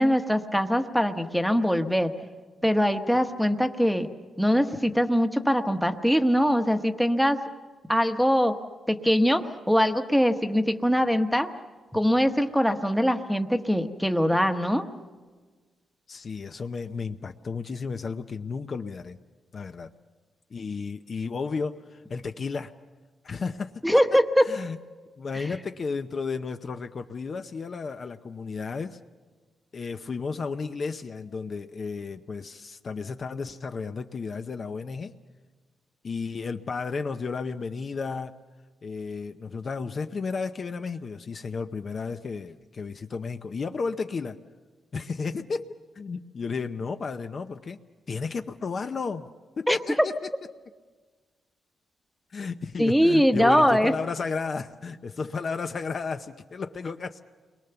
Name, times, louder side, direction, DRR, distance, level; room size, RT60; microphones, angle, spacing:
voice 1, 0.0-2.1 2.6-4.1 4.4-7.4 7.9-8.5 8.9-11.5 11.9-14.9 23.8-24.5 49.7-49.8 52.8-53.9, equal, ahead, 6 dB, 1.1 m, -22 dB
voice 2, 16.1-19.2 19.5-19.9 20.5-22.7 23.2-23.8 24.4-24.8 25.2-29.0 29.7-35.1 36.0-38.3 38.8-44.4 44.9-45.7 46.0-47.8 48.1-50.1 52.3-57.2, left 4 dB, 35° left, 7 dB, 0.7 m, -33 dB
30.0 x 22.5 x 6.9 m, 1.4 s
wide cardioid pair, 160°, 0 cm